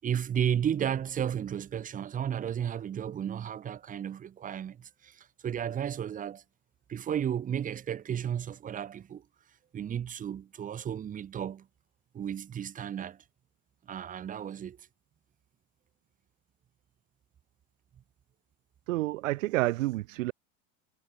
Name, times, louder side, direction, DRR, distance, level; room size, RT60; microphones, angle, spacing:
voice 1, 0.0-6.4 6.9-9.2 9.7-11.7 12.1-13.2 13.9-14.8, right 9 dB, 20° right, 6.8 m, -33 dB
voice 2, 18.9-20.3, right 18 dB, 75° right, 3.9 m, -29 dB
supercardioid pair, 175°, 39 cm